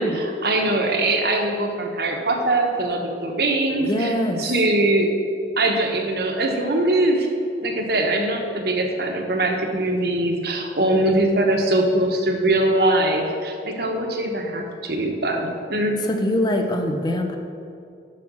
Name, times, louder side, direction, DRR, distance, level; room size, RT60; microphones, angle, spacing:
voice 1, 0.0-4.1 4.4-5.1 5.6-7.3 7.6-16.0, right 1 dB, 60° right, 2 dB, 1.1 m, -22 dB
voice 2, 3.8-4.5 16.0-17.4, equal, 25° left, 4 dB, 0.6 m, -23 dB
7.6 x 6.0 x 6.2 m, 2.5 s
head